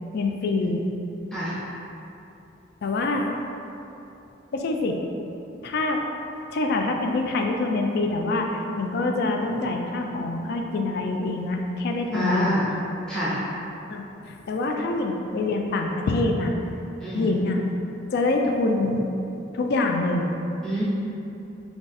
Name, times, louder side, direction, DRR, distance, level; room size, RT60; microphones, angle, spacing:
voice 1, 0.1-0.8 2.8-3.3 4.5-5.0 5.6-6.0 6.5-12.6 13.9-16.5 17.1-17.7 18.1-19.0 19.5-20.3, left 2 dB, 60° left, 3 dB, 0.3 m, -25 dB
voice 2, 12.1-12.6 13.1-13.4 17.0-17.3 20.6-20.8, equal, 5° left, -12 dB, 0.8 m, -26 dB
3.6 x 2.4 x 4.0 m, 2.9 s
head